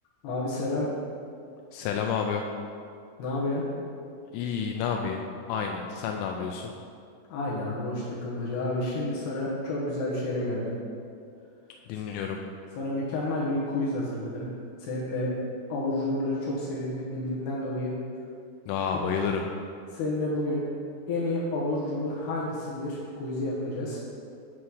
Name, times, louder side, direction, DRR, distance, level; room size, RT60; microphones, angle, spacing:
voice 1, 0.2-0.9 3.2-3.6 7.3-10.8 12.8-14.5 14.8-15.3 15.7-17.9 19.9-20.7 21.1-24.0, left 1 dB, 65° left, -6 dB, 3.1 m, -30 dB
voice 2, 1.7-2.4 4.3-5.2 5.5-6.7 11.9-12.4 18.7-19.4, left 7 dB, 85° left, 2 dB, 3.0 m, -29 dB
9.9 x 4.2 x 6.2 m, 2.4 s
omnidirectional pair, 5.5 m